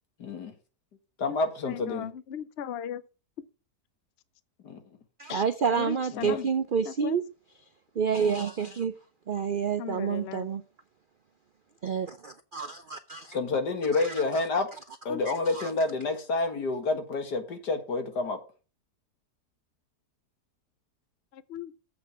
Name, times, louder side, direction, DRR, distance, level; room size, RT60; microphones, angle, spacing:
voice 1, 0.2-0.5 1.2-2.1 4.6-4.8 6.1-6.4 13.3-14.7 15.1-18.4, left 3 dB, 90° left, 2.3 m, -29 dB
voice 2, 1.7-3.0 3.4-3.5 5.3-5.4 5.7-6.5 6.8-7.2 9.8-10.5 15.1-15.2 21.3-21.7, left 9 dB, 55° left, 0.7 m, -37 dB
voice 3, 5.2-7.2 8.0-8.9 9.3-10.6 11.8-13.4 14.0-14.1 15.6-15.7, right 6 dB, 70° right, 0.5 m, -28 dB
7.7 x 5.9 x 7.2 m
omnidirectional pair, 1.7 m